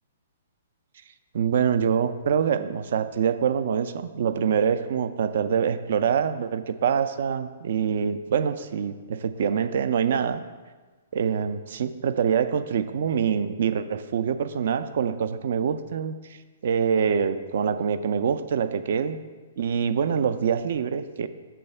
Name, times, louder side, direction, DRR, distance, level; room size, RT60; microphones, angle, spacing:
voice 1, 1.3-10.4 11.1-16.1 16.6-19.2 19.6-21.3, right 7 dB, 55° right, 12 dB, 0.3 m, -25 dB
6.8 x 3.3 x 5.5 m, 1.3 s
figure-of-eight pair, 120°, 0 cm